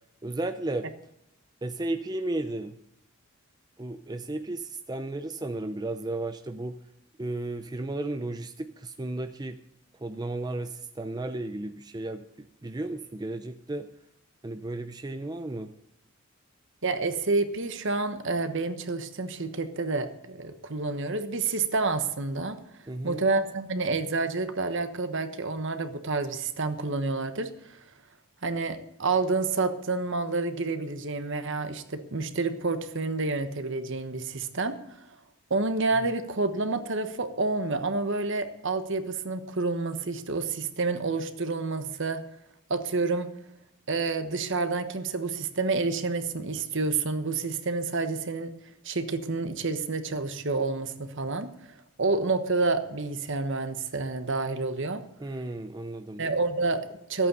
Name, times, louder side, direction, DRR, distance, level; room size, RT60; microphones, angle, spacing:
voice 1, 0.2-0.9 1.6-2.8 3.8-6.8 7.2-9.6 10.0-13.9 14.4-15.7 22.9-23.3 55.2-56.2, right 2 dB, 20° right, 8 dB, 0.5 m, -34 dB
voice 2, 16.8-22.6 23.0-27.5 28.4-35.0 35.5-42.2 42.7-43.3 43.9-48.5 48.8-51.5 52.0-55.0 56.2-57.3, right 3 dB, 60° right, 9 dB, 1.2 m, -29 dB
14.0 x 8.6 x 6.9 m, 0.83 s
head